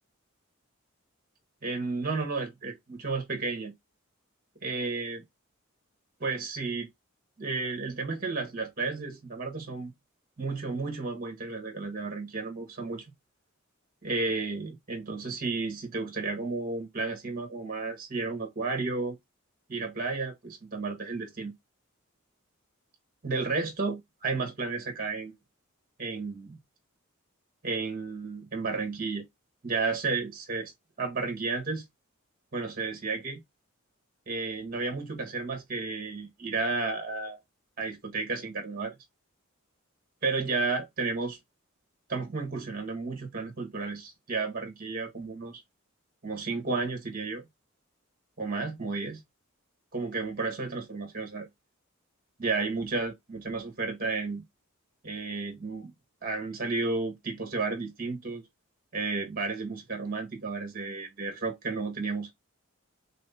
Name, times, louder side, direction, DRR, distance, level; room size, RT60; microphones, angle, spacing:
voice 1, 1.6-3.7 4.6-5.2 6.2-6.9 7.4-9.9 10.4-13.0 14.0-19.2 19.7-21.5 23.2-25.3 26.0-26.6 27.6-29.2 29.6-30.7 31.0-31.8 32.5-33.4 34.3-37.4 37.8-38.9 40.2-41.4 42.1-45.6 46.2-47.5 48.4-49.2 49.9-51.5 52.4-54.4 55.0-55.9 56.2-58.4 58.9-62.3, right 3 dB, 45° right, 1.5 m, -32 dB
6.0 x 2.1 x 2.8 m
head